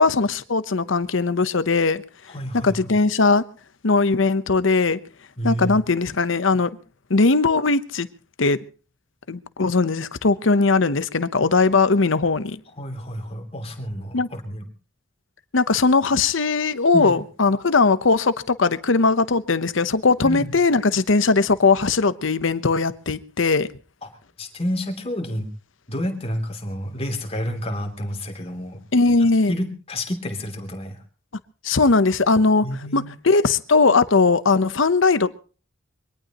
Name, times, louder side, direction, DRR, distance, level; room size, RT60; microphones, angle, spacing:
voice 1, 0.0-2.0 2.6-3.4 3.8-5.0 5.4-6.7 7.1-8.1 8.4-8.6 9.3-12.6 14.1-14.3 15.5-23.7 28.9-29.5 31.6-35.3, left 3 dB, 70° left, 0.9 m, -19 dB
voice 2, 2.3-2.7 5.4-5.7 12.8-14.6 16.9-17.1 20.2-20.5 24.4-25.5 25.9-28.8 29.5-31.0 32.6-33.1, equal, 30° left, 3.0 m, -29 dB
23.5 x 18.0 x 3.0 m
head